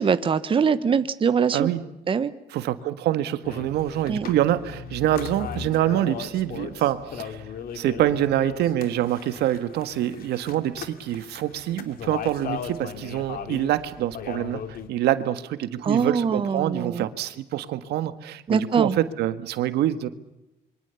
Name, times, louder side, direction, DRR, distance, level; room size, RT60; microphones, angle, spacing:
voice 1, 0.0-1.7 2.1-2.3 4.1-4.3 15.8-17.0 18.5-19.0, right 6 dB, 30° right, 12 dB, 1.2 m, -23 dB
voice 2, 1.5-1.8 2.5-7.4 7.7-20.1, right 12 dB, 75° right, 12 dB, 1.7 m, -25 dB
sound 1, 3.4-14.9, left 8 dB, 60° left, 2.8 m, -38 dB
27.0 x 24.0 x 7.0 m, 0.91 s
cardioid pair, 110°, 17 cm